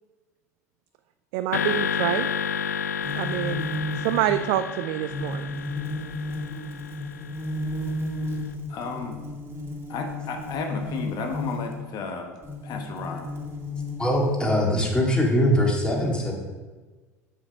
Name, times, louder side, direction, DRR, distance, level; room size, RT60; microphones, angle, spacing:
voice 1, 1.3-2.3 3.1-3.6 4.0-5.5, right 13 dB, 60° right, 10 dB, 0.4 m, -26 dB
sound 1, 1.5-7.9, left 7 dB, 75° left, 0.5 m, -31 dB
sound 2, 3.0-11.9 12.4-14.6, left 2 dB, 30° right, 2.2 m, -33 dB
voice 2, 8.7-9.2 9.9-12.4 12.6-13.3, left 4 dB, 50° left, 4 dB, 1.2 m, -33 dB
voice 3, 14.0-16.3, equal, 10° left, -2 dB, 2.3 m, -22 dB
7.2 x 6.8 x 5.0 m, 1.3 s
figure-of-eight pair, 70°, 9 cm